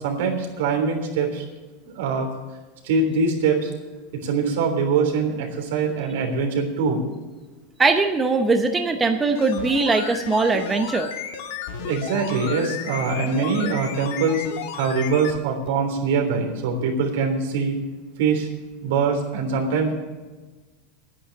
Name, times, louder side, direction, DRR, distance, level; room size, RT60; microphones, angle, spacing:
voice 1, 0.0-1.4 1.8-2.3 2.8-3.7 4.1-7.1 11.8-14.5 14.7-17.8 18.2-18.5 18.8-20.0, right 4 dB, 80° right, 2 dB, 3.4 m, -23 dB
voice 2, 7.8-11.1, right 3 dB, 10° right, 5 dB, 0.8 m, -21 dB
sound 1, 9.3-15.4 15.7-15.8, left 8 dB, 65° left, 1.5 m, -33 dB
10.0 x 10.0 x 7.7 m, 1.3 s
supercardioid pair, 170°, 0 cm